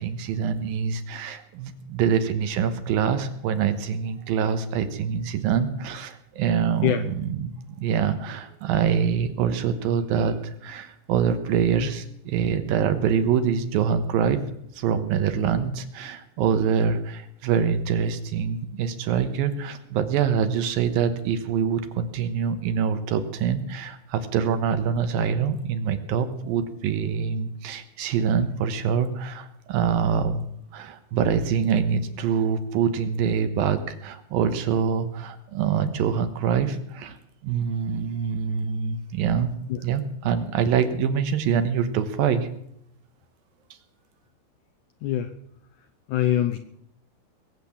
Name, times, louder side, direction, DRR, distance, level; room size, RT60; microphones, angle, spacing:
voice 1, 0.0-7.5 7.8-14.4 14.8-30.4 30.7-37.2 37.4-39.5 39.8-42.5, right 7 dB, 75° right, 9 dB, 2.8 m, -25 dB
voice 2, 45.0-45.4 46.1-46.6, left 11 dB, 80° left, 7 dB, 1.8 m, -23 dB
21.0 x 8.4 x 7.2 m, 0.72 s
omnidirectional pair, 4.3 m